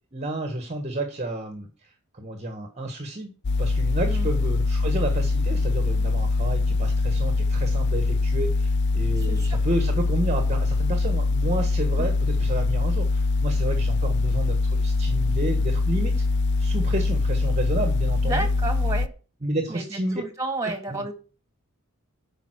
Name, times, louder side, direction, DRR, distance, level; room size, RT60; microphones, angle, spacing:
voice 1, 0.1-3.3 3.6-16.2 16.6-18.5 19.4-20.2 20.6-21.0, right 1 dB, 30° right, 5 dB, 1.4 m, -31 dB
sound 1, 3.4-19.1, left 3 dB, 55° left, 0.5 m, -23 dB
voice 2, 9.2-9.6 12.0-12.1 18.2-19.1 19.7-21.1, right 2 dB, 15° right, 6 dB, 2.1 m, -31 dB
9.1 x 5.4 x 7.8 m, 0.36 s
head